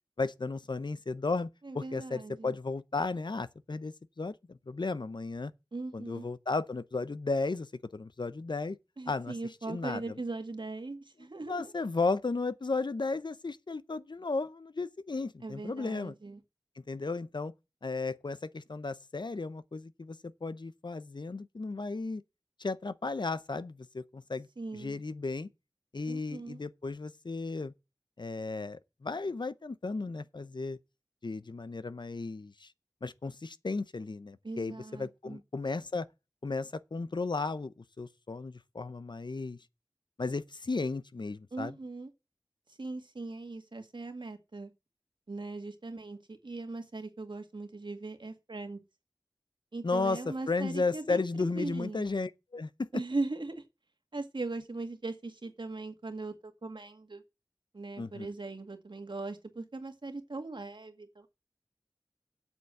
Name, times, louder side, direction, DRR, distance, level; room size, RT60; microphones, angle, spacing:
voice 1, 0.2-1.5 1.7-5.5 5.9-8.8 9.1-9.3 9.7-10.0 11.5-16.1 16.8-17.5 17.8-22.2 22.6-25.5 25.9-27.7 28.2-30.8 31.2-32.7 33.0-36.1 36.4-39.6 40.2-41.7 49.8-53.0 58.0-58.3, left 3 dB, 70° left, 0.6 m, -34 dB
voice 2, 1.6-2.5 5.7-6.3 9.0-11.7 15.4-16.4 24.6-25.0 26.1-26.6 34.4-35.4 41.5-42.1 42.8-44.7 45.3-48.8 49.7-52.1 52.9-53.6 54.1-57.2 57.7-61.3, right 3 dB, 80° right, 2.0 m, -39 dB
8.2 x 7.1 x 7.6 m
wide cardioid pair, 50°, 8 cm